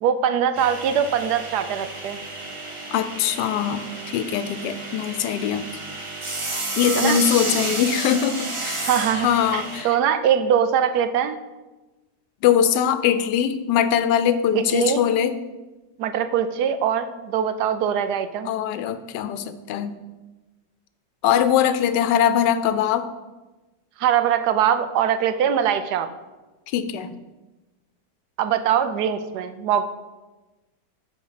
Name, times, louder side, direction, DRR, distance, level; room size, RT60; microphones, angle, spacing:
voice 1, 0.0-2.2 7.0-7.2 8.9-11.4 14.5-15.0 16.0-18.5 24.0-26.1 28.4-29.8, right 8 dB, 75° right, 11 dB, 1.1 m, -22 dB
sound 1, 0.5-9.8, right 2 dB, 35° right, 0.5 m, -31 dB
voice 2, 2.9-3.9 4.1-5.7 6.8-8.9 9.2-10.0 12.4-15.3 18.4-19.9 21.2-23.1 26.7-27.1, left 9 dB, 85° left, 12 dB, 1.2 m, -22 dB
9.1 x 4.2 x 5.7 m, 1.1 s
omnidirectional pair, 1.8 m